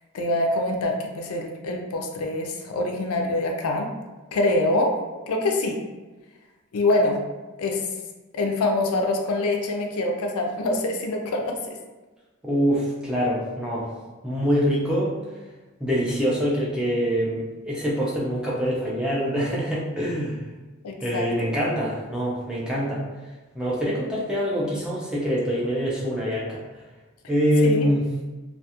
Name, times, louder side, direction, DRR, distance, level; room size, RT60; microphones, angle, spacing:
voice 1, 0.1-3.9 4.3-5.0 5.3-5.8 6.7-7.2 7.6-7.8 8.3-11.8 20.8-21.5 27.6-27.9, left 2 dB, 80° left, 2 dB, 0.4 m, -25 dB
voice 2, 12.4-13.9 14.2-15.2 15.8-20.4 21.0-23.0 23.5-26.6 27.3-28.1, equal, 5° right, -6 dB, 0.4 m, -24 dB
2.3 x 2.3 x 2.8 m, 1.2 s
head